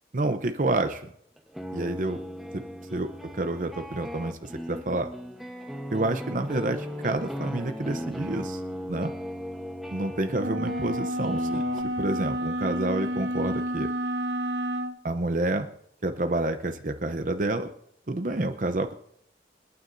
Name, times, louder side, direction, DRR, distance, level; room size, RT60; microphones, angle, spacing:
voice 1, 0.1-1.1 1.7-2.2 2.5-2.6 2.9-5.1 5.9-8.6 8.9-9.1 9.9-11.6 11.9-13.9 15.0-15.7 16.0-17.7 18.1-18.9, right 2 dB, 45° right, 7 dB, 0.7 m, -28 dB
sound 1, 1.4-11.8, equal, ahead, 1.0 m, -37 dB
sound 2, 10.4-15.0, equal, 90° right, 1.0 m, -30 dB
28.0 x 9.5 x 2.7 m, 0.70 s
head